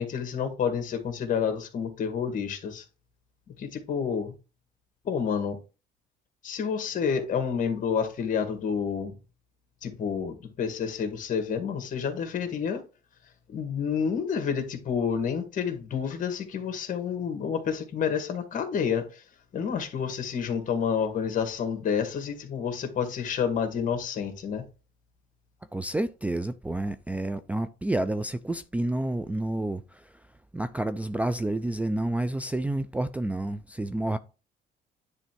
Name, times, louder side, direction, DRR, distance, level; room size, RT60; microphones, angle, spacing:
voice 1, 0.0-2.8 3.6-4.3 5.0-5.6 6.4-9.1 9.8-12.8 13.5-19.2 19.5-24.6, left 7 dB, 50° left, 1.8 m, -29 dB
voice 2, 25.7-30.3 30.5-34.2, right 1 dB, 10° right, 0.4 m, -29 dB
9.8 x 3.3 x 4.5 m
cardioid pair, 110°, 17 cm